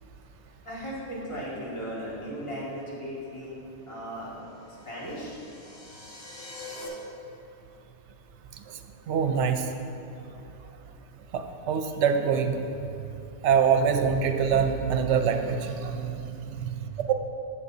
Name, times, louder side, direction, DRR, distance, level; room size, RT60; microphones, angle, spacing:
voice 1, 0.6-3.6 3.9-4.5 4.8-5.4, equal, 25° left, -8 dB, 2.2 m, -36 dB
sound 1, 4.3-6.9, left 3 dB, 55° left, 1.5 m, -45 dB
voice 2, 9.1-9.6 11.3-12.6 13.4-16.6 17.1-17.2, right 7 dB, 70° right, 6 dB, 0.9 m, -24 dB
16.0 x 5.6 x 2.7 m, 2.8 s
omnidirectional pair, 1.2 m